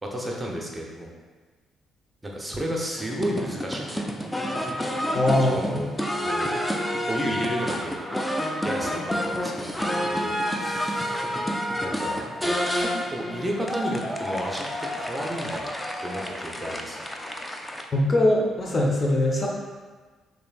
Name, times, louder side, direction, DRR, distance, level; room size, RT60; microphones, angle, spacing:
voice 1, 0.0-1.1 2.2-4.0 5.4-5.9 6.3-6.6 7.1-8.0 8.6-9.8 10.1-11.3 11.7-15.7 16.0-17.0, equal, 15° right, -1 dB, 0.9 m, -32 dB
sound 1, 3.0-17.9, equal, 10° left, 0.5 m, -29 dB
voice 2, 5.1-5.9 17.9-19.5, left 1 dB, 35° left, -1 dB, 0.8 m, -22 dB
6.4 x 2.9 x 2.4 m, 1.4 s
figure-of-eight pair, 45°, 0 cm